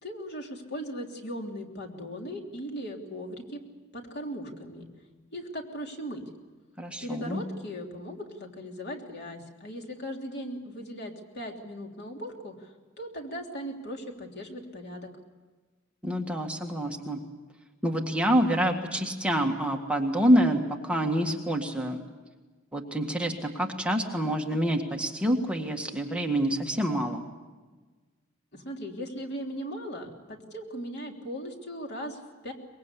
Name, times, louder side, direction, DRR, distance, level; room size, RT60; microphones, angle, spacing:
voice 1, 0.0-3.6 3.9-4.9 5.3-6.3 7.0-15.1 28.5-32.5, equal, 55° left, 2 dB, 3.3 m, -38 dB
voice 2, 6.8-7.4 16.0-17.2 17.8-22.0 22.7-27.3, equal, 5° right, 1 dB, 1.7 m, -27 dB
24.0 x 22.0 x 8.4 m, 1.3 s
head